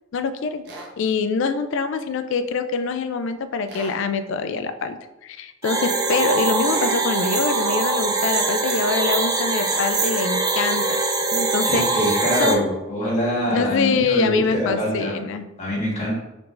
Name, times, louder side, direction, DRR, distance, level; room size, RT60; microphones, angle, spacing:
voice 1, 0.1-0.6 1.0-5.0 5.2-12.7 13.5-15.5, left 5 dB, 60° left, 10 dB, 0.4 m, -24 dB
sound 1, 0.6-0.9 3.7-4.0 6.6-7.0 9.7-10.0, right 1 dB, 55° right, 0.7 m, -37 dB
sound 2, 5.6-12.5, right 3 dB, 20° right, 0.4 m, -22 dB
voice 2, 11.6-15.2 15.6-16.1, equal, 35° left, -5 dB, 1.5 m, -24 dB
4.6 x 3.9 x 2.5 m, 0.99 s
head